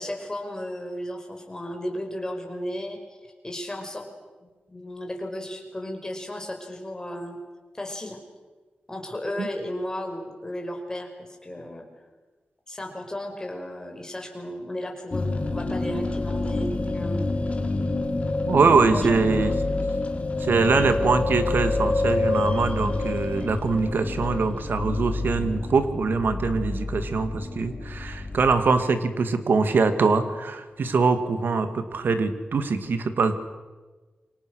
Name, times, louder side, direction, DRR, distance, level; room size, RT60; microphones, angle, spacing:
voice 1, 0.0-4.1 4.4-7.4 7.7-8.2 8.9-11.9 12.7-17.3 18.7-19.1, left 1 dB, 20° left, 3 dB, 5.3 m, -34 dB
sound 1, 15.1-28.6, left 2 dB, 40° left, 3.4 m, -27 dB
voice 2, 18.5-19.6 20.4-33.3, right 4 dB, 80° right, 9 dB, 2.2 m, -23 dB
28.5 x 25.5 x 6.5 m, 1.3 s
wide cardioid pair, 115°, 3 cm